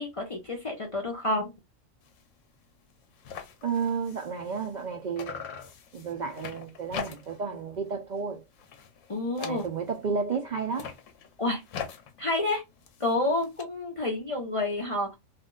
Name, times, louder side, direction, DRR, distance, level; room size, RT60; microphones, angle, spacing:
voice 1, 0.0-1.5 9.1-9.6 11.4-11.6 12.2-12.6 13.0-15.1, left 2 dB, 40° left, 0.5 m, -29 dB
sound 1, 2.0-2.3 2.6-2.7 2.9-4.9 5.2-7.5 7.9-8.2 8.5-10.1 10.6-13.6, left 7 dB, 80° left, 1.0 m, -42 dB
voice 2, 3.6-5.5 5.9-8.4 9.4-10.9, right 5 dB, 65° right, 0.4 m, -32 dB
2.5 x 2.1 x 3.7 m
omnidirectional pair, 1.3 m